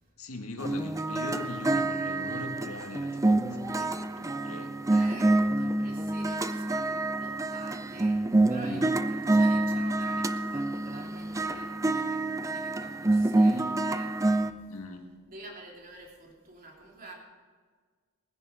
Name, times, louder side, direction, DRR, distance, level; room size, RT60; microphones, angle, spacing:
voice 1, 0.2-4.7 5.1-5.4 8.6-8.9 14.7-15.0, left 2 dB, 75° left, 3 dB, 1.9 m, -41 dB
sound 1, 0.6-14.5, right 2 dB, 15° right, 0.5 m, -27 dB
voice 2, 4.9-14.5 15.3-17.2, right 2 dB, 40° right, -1 dB, 3.2 m, -48 dB
20.0 x 10.0 x 5.0 m, 1.5 s
head